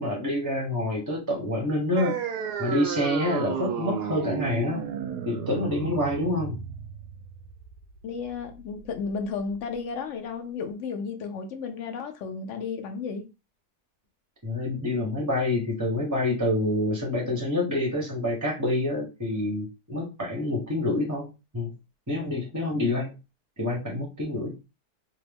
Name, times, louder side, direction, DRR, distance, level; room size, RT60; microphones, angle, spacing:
voice 1, 0.0-2.3 2.6-4.9 5.3-6.6 14.4-21.7 22.1-23.1 23.6-24.5, left 1 dB, 20° right, 0.6 m, -27 dB
sound 1, 2.0-9.0, right 8 dB, 80° right, 1.1 m, -33 dB
voice 2, 8.0-13.2, left 5 dB, 70° left, 0.7 m, -33 dB
3.5 x 2.0 x 3.4 m
omnidirectional pair, 1.7 m